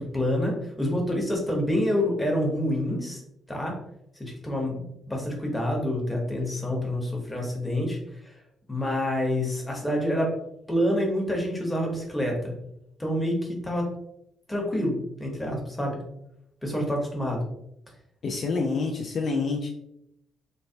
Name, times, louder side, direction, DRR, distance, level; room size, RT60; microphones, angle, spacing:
voice 1, 0.0-3.2 3.5-3.7 4.1-4.7 5.1-8.3 8.7-10.3 10.7-12.5 13.0-13.9 14.5-16.0 16.6-17.4, left 1 dB, 10° left, -1 dB, 0.9 m, -27 dB
voice 2, 18.2-19.7, left 4 dB, 50° left, 2 dB, 0.3 m, -27 dB
3.1 x 2.1 x 2.7 m, 0.79 s
cardioid pair, 90°, 0 cm